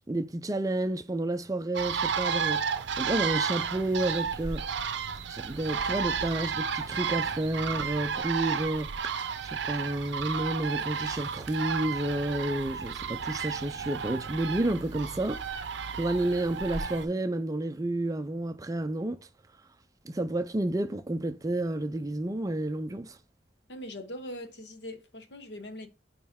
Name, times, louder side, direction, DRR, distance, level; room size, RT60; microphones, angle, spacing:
voice 1, 0.1-2.6 3.0-4.6 5.3-9.1 9.4-15.5 16.0-19.2 20.0-23.2, right 1 dB, 20° right, 0.4 m, -30 dB
sound 1, 1.7-15.3, equal, 5° left, 1.2 m, -57 dB
sound 2, 1.7-17.0, right 6 dB, 75° right, 0.5 m, -32 dB
voice 2, 23.7-25.9, left 1 dB, 70° left, 1.0 m, -41 dB
8.8 x 3.1 x 3.5 m
head